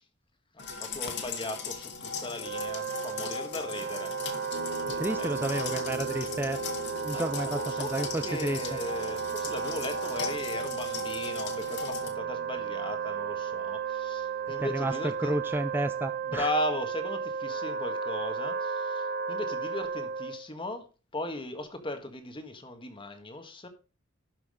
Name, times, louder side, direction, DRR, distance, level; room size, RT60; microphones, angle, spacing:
sound 1, 0.6-12.1, left 5 dB, 55° left, 2.3 m, -38 dB
voice 1, 0.8-4.1 4.8-5.3 7.1-15.4 16.2-20.9 21.1-23.7, left 1 dB, 25° left, 7 dB, 1.6 m, -37 dB
Wind instrument woodwind instrument, 2.3-20.5, right 7 dB, 50° right, 0.8 m, -34 dB
sound 2, 4.5-17.6, left 3 dB, 75° right, 4.7 m, -46 dB
voice 2, 5.0-6.6 7.0-8.6 14.6-16.5, right 1 dB, 10° right, 11 dB, 0.4 m, -31 dB
12.0 x 6.2 x 4.9 m, 0.34 s
head